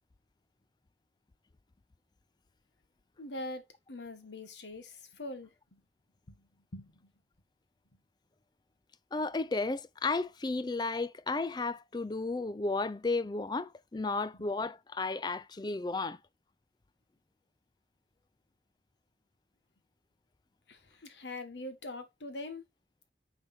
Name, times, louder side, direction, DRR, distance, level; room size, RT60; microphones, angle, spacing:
voice 1, 3.2-3.6 3.9-4.9 5.2-5.5 6.7-6.9 20.7-22.6, left 2 dB, 80° left, 1.5 m, -42 dB
voice 2, 9.1-16.2, left 3 dB, 25° left, 0.4 m, -33 dB
9.2 x 3.4 x 4.3 m
head